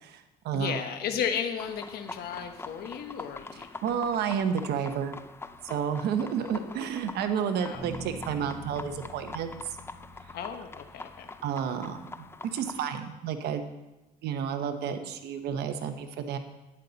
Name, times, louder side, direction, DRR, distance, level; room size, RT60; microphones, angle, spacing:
voice 1, 0.0-0.8 3.5-5.1 5.6-9.8 11.4-12.2 12.5-13.7 14.2-16.4, right 7 dB, 75° right, 8 dB, 1.1 m, -31 dB
voice 2, 0.5-3.7 6.4-6.9 7.6-7.8 10.3-11.3, left 8 dB, 70° left, 6 dB, 1.1 m, -34 dB
sound 1, 1.6-12.9, left 3 dB, 15° left, 0.5 m, -44 dB
sound 2, 7.7-11.8, equal, 10° right, 3.4 m, -45 dB
11.0 x 10.0 x 4.1 m, 1.1 s
cardioid pair, 110°, 17 cm